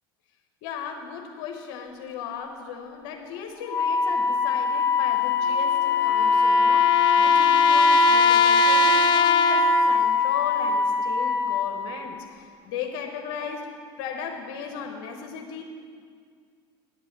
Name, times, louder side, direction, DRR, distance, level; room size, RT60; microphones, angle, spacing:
voice 1, 0.6-13.7 14.0-15.6, left 6 dB, 70° left, 2 dB, 1.0 m, -36 dB
Wind instrument woodwind instrument, 3.7-11.9, left 3 dB, 20° left, 2.1 m, -21 dB
sound 1, 5.4-10.2, left 12 dB, 45° left, 0.4 m, -26 dB
10.0 x 5.4 x 8.5 m, 2.1 s
supercardioid pair, 90°, 11 cm